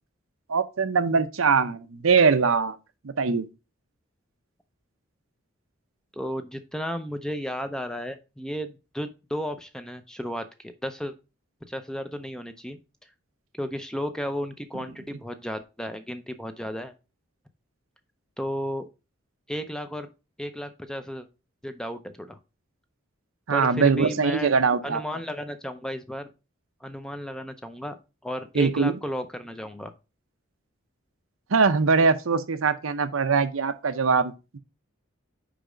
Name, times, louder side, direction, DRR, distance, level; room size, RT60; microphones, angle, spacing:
voice 1, 0.5-2.8 3.0-3.5 23.5-25.0 28.5-28.9 31.5-34.6, right 5 dB, 85° right, 0.7 m, -22 dB
voice 2, 6.1-11.1 11.7-12.8 13.6-16.9 18.4-18.8 19.5-20.1 20.4-21.3 21.6-22.4 23.5-24.5 24.8-26.3 26.8-28.0 28.2-29.9, equal, 5° left, 0.5 m, -33 dB
5.1 x 4.9 x 5.0 m
head